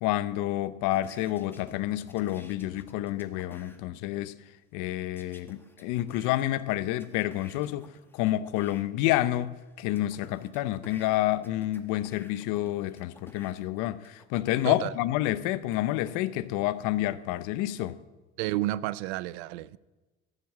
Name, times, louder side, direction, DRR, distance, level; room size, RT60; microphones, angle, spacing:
voice 1, 0.0-4.4 4.7-9.5 9.8-18.0, left 15 dB, 75° left, 0.8 m, -29 dB
sound 1, 0.9-3.8 5.2-8.8 9.4-14.7 15.3-16.1, left 1 dB, 5° left, 1.7 m, -54 dB
voice 2, 18.4-19.8, right 16 dB, 85° right, 0.6 m, -31 dB
13.0 x 7.3 x 7.4 m
supercardioid pair, 85°, 31 cm